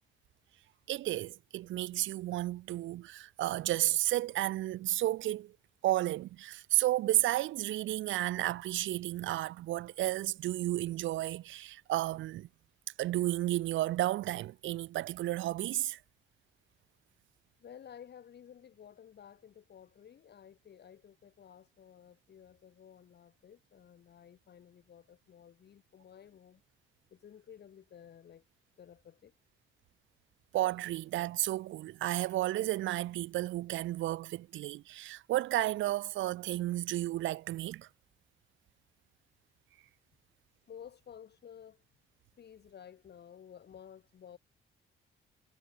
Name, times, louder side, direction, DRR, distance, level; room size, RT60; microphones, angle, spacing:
voice 1, 0.9-5.5 5.8-12.5 13.0-16.0 30.5-37.9, right 15 dB, 75° right, 0.6 m, -32 dB
voice 2, 17.6-26.6 27.1-28.4 28.8-29.3 40.7-41.8 42.4-44.4, left 8 dB, 55° left, 3.5 m, -54 dB
cardioid pair, 90°, 20 cm